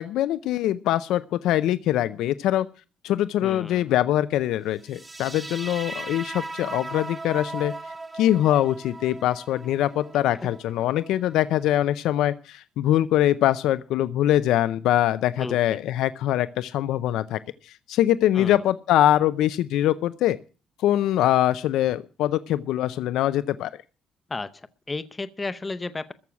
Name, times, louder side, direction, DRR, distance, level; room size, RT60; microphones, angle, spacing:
voice 1, 0.0-2.7 3.0-7.7 8.1-20.4 20.8-23.7, left 13 dB, 75° left, 15 dB, 0.6 m, -23 dB
voice 2, 3.4-3.9 15.4-15.8 18.3-18.6 24.3-26.1, left 3 dB, 15° left, 14 dB, 0.7 m, -33 dB
sound 1, 4.9-11.9, right 2 dB, 15° right, 1.1 m, -38 dB
14.0 x 6.2 x 9.8 m, 0.36 s
cardioid pair, 160°, 0 cm